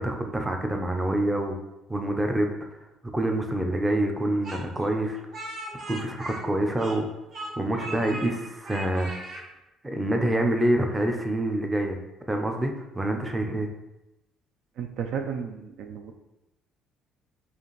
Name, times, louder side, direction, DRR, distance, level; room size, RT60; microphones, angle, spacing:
voice 1, 0.0-1.6 1.9-2.6 3.1-5.2 5.9-7.1 7.6-9.1 9.8-12.0 12.3-13.7, right 1 dB, 15° right, 4 dB, 0.5 m, -26 dB
Speech, 4.4-7.1 7.3-8.3 8.6-9.4, right 2 dB, 45° right, 1.0 m, -38 dB
voice 2, 14.8-16.1, right 7 dB, 70° right, 5 dB, 0.4 m, -33 dB
4.9 x 2.5 x 3.1 m, 0.95 s
cardioid pair, 100°, 0 cm